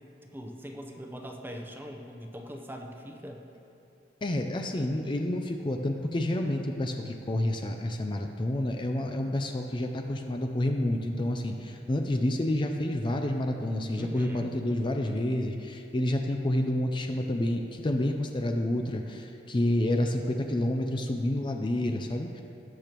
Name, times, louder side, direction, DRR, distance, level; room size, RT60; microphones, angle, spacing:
voice 1, 0.3-3.4 14.0-14.5, equal, 10° right, 2 dB, 0.7 m, -41 dB
voice 2, 4.2-22.4, left 1 dB, 30° left, 4 dB, 0.5 m, -29 dB
18.5 x 6.8 x 3.0 m, 2.8 s
head